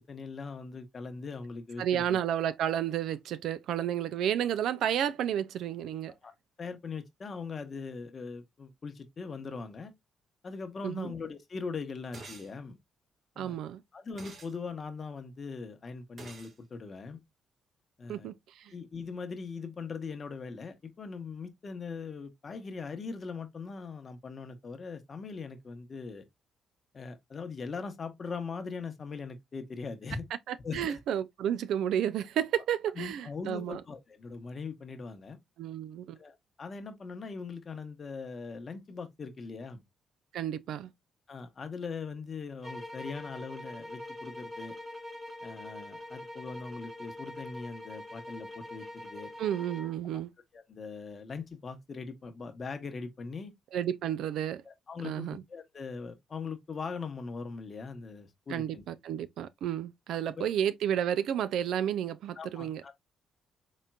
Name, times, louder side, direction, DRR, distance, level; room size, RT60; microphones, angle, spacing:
voice 1, 0.0-2.2 6.2-6.3 6.6-9.9 10.4-12.8 13.4-13.6 13.9-17.2 18.0-18.3 18.7-26.2 26.9-30.3 30.6-31.0 33.0-35.4 36.2-39.8 41.3-44.7 45.4-49.3 50.5-53.5 54.6-58.8 60.2-60.5 62.4-62.9, left 4 dB, 40° left, 0.9 m, -40 dB
voice 2, 1.8-6.1 10.8-11.1 13.4-13.8 18.1-18.7 30.5-33.8 35.6-36.2 40.3-40.9 49.4-50.3 53.7-54.6 55.0-55.4 58.5-62.8, right 10 dB, 80° right, 0.4 m, -31 dB
sound 1, 12.1-12.5 14.2-14.5 16.2-16.5, right 3 dB, 55° right, 1.2 m, -47 dB
sound 2, 42.6-50.0, left 1 dB, 15° right, 0.9 m, -44 dB
4.1 x 3.6 x 2.2 m
cardioid pair, 90°, 0 cm